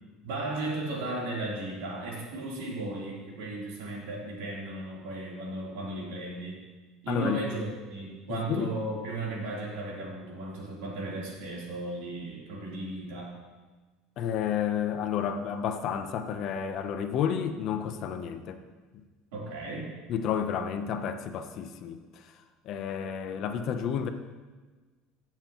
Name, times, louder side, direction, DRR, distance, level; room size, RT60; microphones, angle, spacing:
voice 1, 0.2-6.6 7.0-13.4 19.3-20.0, right 2 dB, 85° right, -4 dB, 3.3 m, -35 dB
voice 2, 7.1-7.4 8.3-8.7 14.2-18.6 20.1-22.0 22.7-24.1, left 8 dB, 40° left, 8 dB, 0.7 m, -31 dB
17.0 x 7.4 x 3.0 m, 1.3 s
cardioid pair, 165°, 0 cm